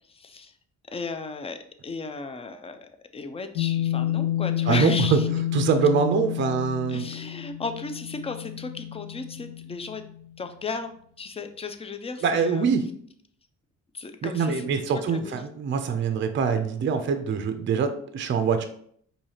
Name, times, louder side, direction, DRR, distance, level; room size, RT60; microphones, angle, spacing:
voice 1, 0.1-0.5 0.9-1.6 1.8-5.3 6.9-10.0 10.4-10.9 11.2-12.7 13.9-15.4, left 4 dB, 20° left, 7 dB, 0.4 m, -35 dB
sound 1, 3.6-10.3, left 12 dB, 75° left, 0.6 m, -29 dB
voice 2, 5.5-7.0 12.2-12.8 14.2-18.7, right 6 dB, 40° right, 7 dB, 0.5 m, -24 dB
4.7 x 2.7 x 2.8 m, 0.62 s
cardioid pair, 90°, 30 cm